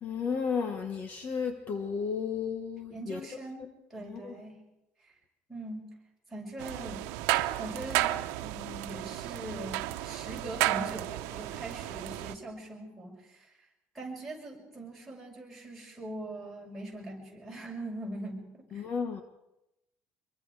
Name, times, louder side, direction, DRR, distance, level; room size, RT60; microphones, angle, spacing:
voice 1, 0.0-3.2 4.0-4.3 18.7-19.2, left 6 dB, 40° left, 6 dB, 1.4 m, -33 dB
voice 2, 2.9-4.6 5.0-5.1 5.5-5.9 6.3-7.0 7.6-13.5 13.9-18.8, right 1 dB, ahead, -4 dB, 6.3 m, -42 dB
sound 1, 6.6-12.3, right 16 dB, 90° right, 1.0 m, -32 dB
25.5 x 23.0 x 4.9 m, 0.91 s
cardioid pair, 155°, 5 cm